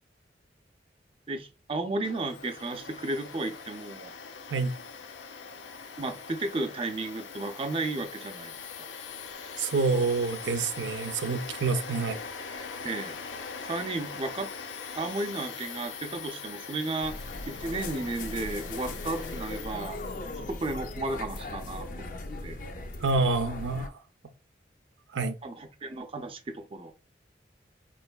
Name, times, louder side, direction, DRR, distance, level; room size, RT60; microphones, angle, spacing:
voice 1, 1.3-4.1 6.0-8.5 8.8-8.9 12.8-13.2 13.6-14.5 14.9-17.2 17.5-20.0 20.4-22.1 22.4-22.6 25.4-26.9, right 2 dB, 30° right, 0.4 m, -33 dB
Domestic sounds home sounds, 2.0-20.9, left 5 dB, 90° left, 0.6 m, -42 dB
voice 2, 9.6-12.2 23.0-23.9 25.1-25.4, right 3 dB, 90° right, 0.6 m, -27 dB
sound 1, 17.0-23.9, left 2 dB, 45° left, 0.5 m, -38 dB
4.5 x 3.1 x 2.3 m
head